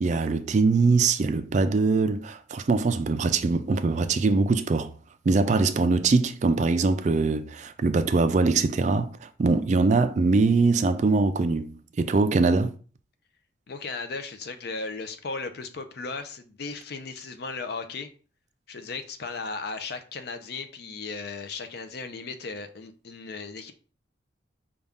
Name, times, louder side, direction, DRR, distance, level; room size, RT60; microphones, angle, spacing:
voice 1, 0.0-4.9 5.3-12.7, right 3 dB, 40° right, 0.3 m, -22 dB
voice 2, 13.7-18.1 18.7-23.7, left 4 dB, 55° left, 0.5 m, -36 dB
5.2 x 2.3 x 3.5 m
head